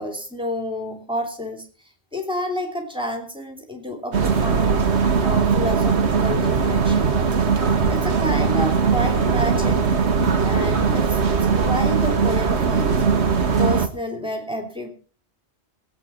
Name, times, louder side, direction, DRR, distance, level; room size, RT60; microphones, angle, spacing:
voice 1, 0.0-1.7 2.1-4.8 5.2-7.2 7.9-9.8 10.4-11.2 11.5-13.0 13.6-14.9, equal, 5° right, 3 dB, 2.9 m, -29 dB
sound 1, 4.1-13.9, right 5 dB, 70° right, 1.6 m, -20 dB
21.5 x 8.4 x 4.4 m, 0.40 s
omnidirectional pair, 1.2 m